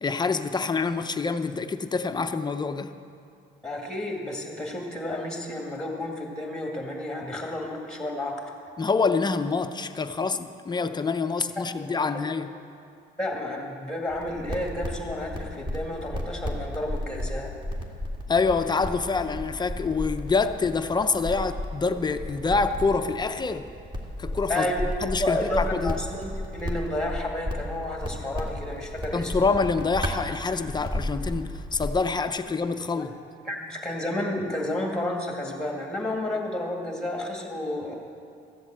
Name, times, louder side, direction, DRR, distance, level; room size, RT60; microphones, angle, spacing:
voice 1, 0.0-2.9 8.8-12.5 18.3-23.7 24.2-24.7 25.0-25.9 29.1-33.1, left 4 dB, 20° left, 9 dB, 0.5 m, -26 dB
voice 2, 3.6-8.5 11.6-12.3 13.2-17.5 24.5-24.8 25.2-29.3 33.0-33.1 33.4-37.9, left 1 dB, 5° left, 0 dB, 2.2 m, -31 dB
sound 1, 14.1-32.0, left 1 dB, 25° right, 2.0 m, -34 dB
14.0 x 7.9 x 7.7 m, 2.4 s
cardioid pair, 120°, 19 cm